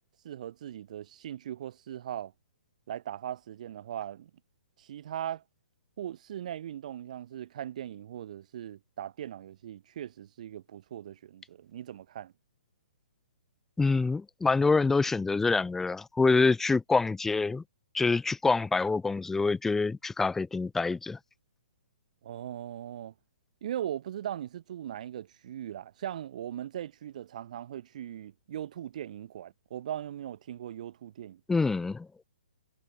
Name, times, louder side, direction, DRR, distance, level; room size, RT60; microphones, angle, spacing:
voice 1, 0.2-2.3 2.9-4.3 4.8-5.4 6.0-12.3 22.2-23.1 23.6-31.4, right 11 dB, 50° right, 4.9 m, -39 dB
voice 2, 13.8-17.6 17.9-21.2 31.5-32.2, left 4 dB, 5° left, 1.0 m, -26 dB
figure-of-eight pair, 130°, 5 cm